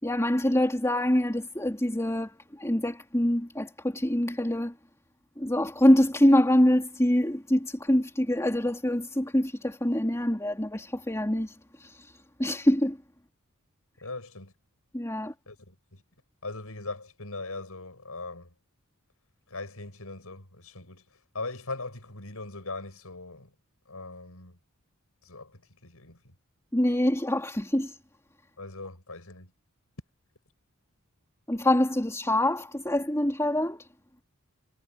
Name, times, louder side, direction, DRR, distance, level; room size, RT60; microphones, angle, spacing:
voice 1, 0.0-4.8 5.4-13.0 14.9-15.3 26.7-28.0 31.5-33.9, left 1 dB, 15° left, 3.2 m, -25 dB
voice 2, 14.0-14.5 15.5-16.0 16.4-18.5 19.5-23.5 23.9-24.6 25.2-26.3 28.6-29.5, left 3 dB, 75° left, 7.6 m, -40 dB
head